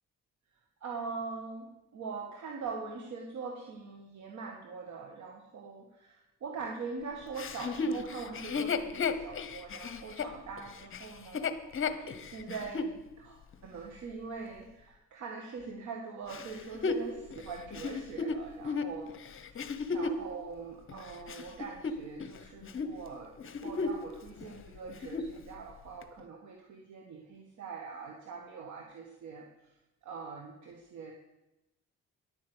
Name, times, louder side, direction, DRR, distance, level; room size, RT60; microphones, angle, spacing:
voice 1, 0.8-19.1 19.5-29.5 30.0-31.1, right 4 dB, 70° right, 2 dB, 1.7 m, -43 dB
Chuckle chortle, 7.4-12.9 13.5-13.6 16.3-20.3 20.9-22.4 22.6-22.9 23.4-24.1 24.4-24.5 24.9-25.4 26.0-26.1, left 4 dB, 45° left, 1.1 m, -34 dB
11.0 x 9.3 x 8.1 m, 0.96 s
cardioid pair, 90°, 30 cm